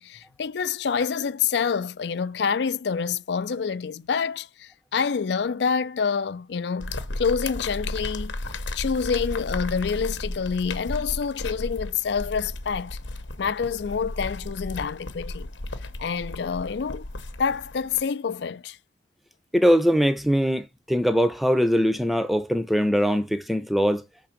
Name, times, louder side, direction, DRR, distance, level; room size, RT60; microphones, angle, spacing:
voice 1, 0.0-8.4 8.7-13.0 13.4-15.5 16.0-17.1 17.4-18.8, left 6 dB, 65° left, 0.4 m, -27 dB
sound 1, 6.8-18.0, left 2 dB, 80° left, 0.9 m, -34 dB
voice 2, 19.5-24.0, equal, ahead, 0.5 m, -21 dB
5.8 x 3.7 x 5.8 m
head